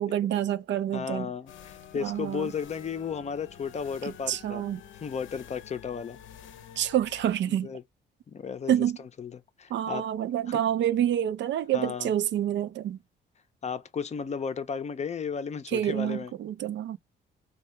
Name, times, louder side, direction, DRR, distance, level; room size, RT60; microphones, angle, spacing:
voice 1, 0.0-1.3 2.0-2.5 4.3-4.8 6.8-7.7 8.7-9.0 9.7-13.0 15.7-17.0, right 11 dB, 65° right, 0.5 m, -27 dB
voice 2, 0.9-4.6 5.0-6.2 7.5-7.8 8.3-8.7 9.2-10.0 10.5-10.6 11.7-12.1 13.6-16.3, left 6 dB, 35° left, 0.5 m, -34 dB
sound 1, 1.5-7.3, left 9 dB, 75° left, 0.6 m, -49 dB
2.7 x 2.3 x 3.1 m
cardioid pair, 90°, 20 cm